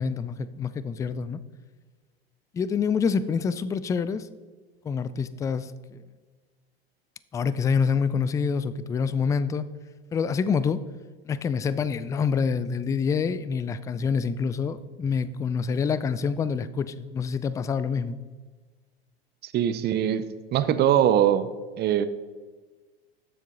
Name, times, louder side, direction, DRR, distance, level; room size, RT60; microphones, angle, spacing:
voice 1, 0.0-1.4 2.5-4.3 4.8-6.0 7.3-9.7 10.1-10.8 11.2-18.2, left 6 dB, 10° left, 16 dB, 0.3 m, -26 dB
voice 2, 19.4-20.2 20.5-21.5 21.8-22.1, right 10 dB, 35° right, 13 dB, 0.7 m, -22 dB
12.5 x 7.4 x 3.9 m, 1.4 s
hypercardioid pair, 90°, 31 cm